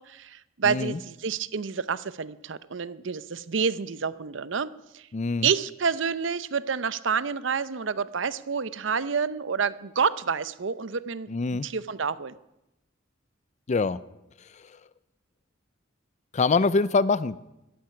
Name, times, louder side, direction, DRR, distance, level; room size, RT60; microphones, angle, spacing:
voice 1, 0.0-5.1 5.4-11.3 11.6-12.4, right 6 dB, 65° right, 16 dB, 0.7 m, -28 dB
voice 2, 0.6-1.0 5.1-5.5 11.3-11.7 13.7-14.0 14.5-14.8 16.3-17.4, left 4 dB, 35° left, 17 dB, 0.4 m, -24 dB
13.0 x 9.2 x 9.9 m, 0.90 s
head